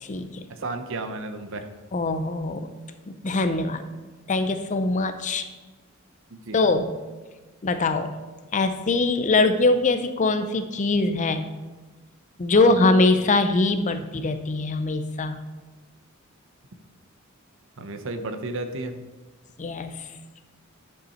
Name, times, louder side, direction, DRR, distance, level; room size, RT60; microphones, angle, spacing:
voice 1, 0.0-0.5 1.9-2.7 3.1-3.8 4.3-5.5 6.5-6.9 7.6-8.1 8.5-11.5 12.4-15.4 19.6-20.1, left 3 dB, 35° left, 9 dB, 0.5 m, -22 dB
voice 2, 0.6-1.7 6.3-6.6 12.5-12.7 17.8-19.0, right 2 dB, 65° right, 7 dB, 0.8 m, -32 dB
10.0 x 5.6 x 4.3 m, 1.2 s
head